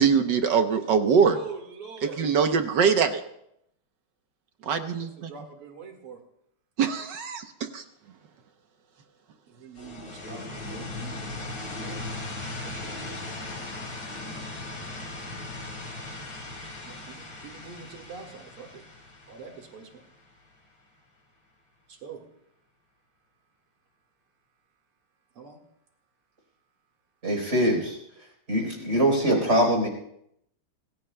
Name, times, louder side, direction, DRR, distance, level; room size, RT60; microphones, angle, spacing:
voice 1, 0.0-1.4 2.2-3.2 4.6-5.3 6.8-7.8, right 6 dB, 60° right, 7 dB, 1.4 m, -23 dB
voice 2, 1.2-2.3 4.6-6.2 9.5-12.2 12.6-13.7 16.8-18.8 19.3-20.0 21.9-22.3 25.3-25.6, right 5 dB, 90° right, 3 dB, 2.8 m, -45 dB
sound 1, 9.8-20.5, left 2 dB, 75° left, 5.1 m, -38 dB
voice 3, 27.2-29.9, equal, 30° right, 1 dB, 4.6 m, -24 dB
26.5 x 16.0 x 2.3 m, 0.76 s
omnidirectional pair, 2.4 m